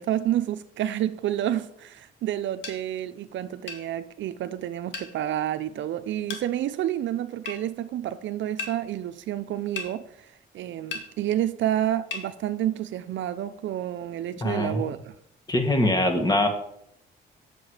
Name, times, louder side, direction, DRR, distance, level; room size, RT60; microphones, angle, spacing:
voice 1, 0.0-10.3 10.5-15.1, right 12 dB, 70° right, 0.6 m, -29 dB
sound 1, 2.6-2.8 3.7-3.8 4.9-5.1 6.3-6.5 7.5-7.6 8.6-8.8 9.8-9.9 10.9-11.1 12.1-12.3, left 4 dB, 70° left, 1.9 m, -34 dB
voice 2, 14.4-14.8 15.5-16.5, left 1 dB, 20° left, 1.8 m, -23 dB
7.8 x 7.2 x 4.9 m
cardioid pair, 90°, 20 cm